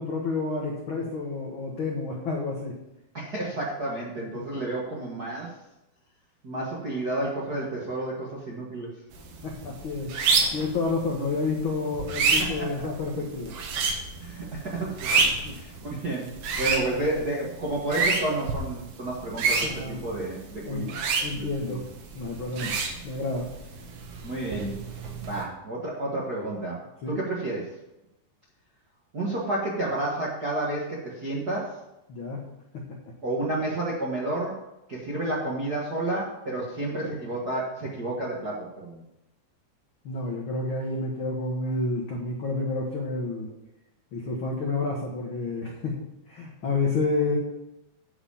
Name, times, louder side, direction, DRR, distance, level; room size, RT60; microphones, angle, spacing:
voice 1, 0.0-2.8 4.3-4.4 9.4-10.2 10.5-13.5 15.4-15.6 19.6-20.0 20.7-21.8 22.1-22.7 23.0-23.5 27.0-27.2 32.1-32.4 32.7-33.0 40.0-43.6 44.1-46.0 46.3-47.4, left 3 dB, 80° left, -1 dB, 1.1 m, -30 dB
voice 2, 3.1-5.5 6.4-8.9 12.4-12.7 14.2-15.1 15.6-20.8 21.4-21.8 22.6-22.7 24.2-24.8 25.2-26.8 27.1-27.7 29.1-31.8 33.2-34.6 34.9-39.0, right 2 dB, 55° right, -5 dB, 1.1 m, -31 dB
sound 1, 9.1-25.4, right 4 dB, 85° right, 3.2 m, -30 dB
9.6 x 5.0 x 7.0 m, 0.89 s
omnidirectional pair, 4.2 m